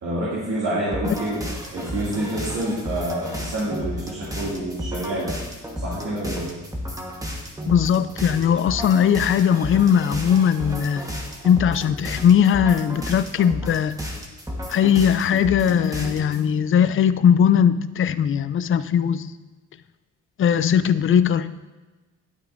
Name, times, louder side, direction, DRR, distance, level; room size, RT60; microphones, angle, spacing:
voice 1, 0.0-1.4 1.7-5.4 5.8-6.5, right 1 dB, 60° right, -8 dB, 2.6 m, -27 dB
sound 1, 0.9-16.5, equal, 10° right, 1.4 m, -33 dB
voice 2, 7.7-11.0 11.4-14.0 14.7-19.3 20.4-21.5, left 8 dB, 45° left, 13 dB, 0.5 m, -19 dB
12.0 x 8.2 x 2.7 m, 1.2 s
cardioid pair, 90°, 30 cm